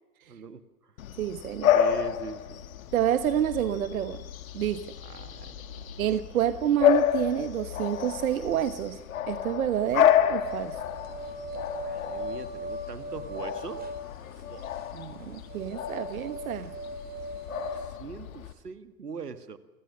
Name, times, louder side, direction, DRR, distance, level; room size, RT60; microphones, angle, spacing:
voice 1, 0.3-0.9 1.7-2.6 5.0-5.9 11.8-13.8 14.3-14.8 17.6-19.6, right 5 dB, 75° right, 11 dB, 1.8 m, -42 dB
Bark / Bird vocalization bird call bird song, 1.0-18.5, left 10 dB, 60° left, 2.1 m, -30 dB
voice 2, 1.2-1.7 2.9-4.3 4.5-4.9 6.0-10.8 14.9-16.7, right 10 dB, 60° right, 12 dB, 1.3 m, -28 dB
sound 1, 10.4-17.9, right 1 dB, 20° right, 4.0 m, -39 dB
29.5 x 24.5 x 6.1 m, 1.1 s
figure-of-eight pair, 95°, 47 cm